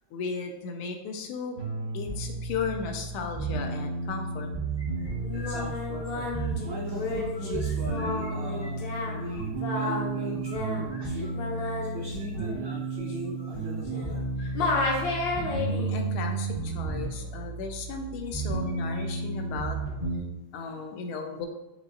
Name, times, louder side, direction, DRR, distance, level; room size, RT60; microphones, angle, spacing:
voice 1, 0.1-1.6 1.9-4.5 7.2-7.3 10.3-10.4 15.3-19.8 20.5-21.5, left 5 dB, 90° left, 4 dB, 1.5 m, -35 dB
sound 1, 1.6-20.2, right 3 dB, 55° right, 0.5 m, -33 dB
sound 2, 4.8-6.7 7.0-8.3 8.6-9.6 10.3-15.9 16.7-17.0 18.2-19.1 19.3-19.4 19.9-20.0 20.6-20.9, left 3 dB, 25° left, 0.6 m, -51 dB
Singing, 5.2-14.2 14.5-16.0, left 3 dB, 70° left, 1.4 m, -33 dB
voice 2, 5.3-11.3 11.8-14.2, right 1 dB, 90° right, -2 dB, 0.8 m, -40 dB
5.5 x 2.9 x 2.5 m, 0.95 s
omnidirectional pair, 2.3 m